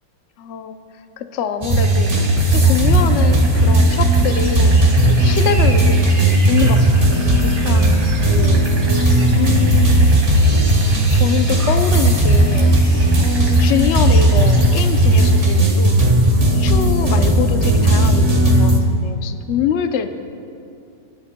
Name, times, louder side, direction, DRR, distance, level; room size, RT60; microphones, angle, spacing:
voice 1, 0.4-0.8 1.2-6.1 6.5-7.9 8.3-8.7 9.3-10.1 11.1-16.0 16.5-20.1, left 8 dB, 75° left, 8 dB, 0.6 m, -24 dB
sound 1, 1.6-18.8, right 1 dB, 20° right, 1.3 m, -15 dB
sound 2, 1.7-15.7, right 2 dB, 40° right, 2.0 m, -33 dB
sound 3, 3.4-17.2, right 3 dB, 80° right, 1.3 m, -30 dB
29.5 x 10.0 x 2.2 m, 2.5 s
omnidirectional pair, 1.9 m